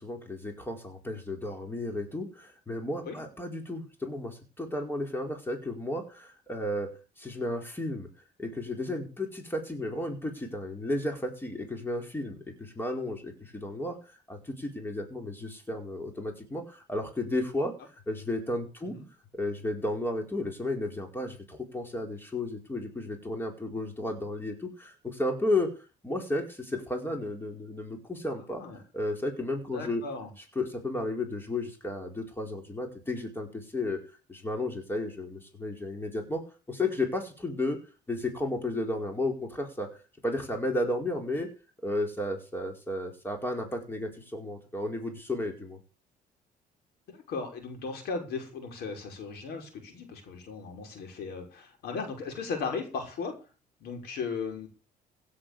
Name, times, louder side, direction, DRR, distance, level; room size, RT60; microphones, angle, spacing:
voice 1, 0.0-6.9 7.2-8.1 8.4-17.7 18.1-18.9 19.3-25.7 26.0-28.6 28.9-30.0 30.5-34.0 34.3-36.4 36.7-37.8 38.1-39.9 40.2-41.5 41.8-45.8, left 1 dB, 10° left, 3 dB, 4.6 m, -33 dB
voice 2, 29.7-30.3 47.1-53.4 53.8-54.7, left 4 dB, 70° left, 4 dB, 6.1 m, -36 dB
16.5 x 7.8 x 7.0 m, 0.34 s
cardioid pair, 110°, 17 cm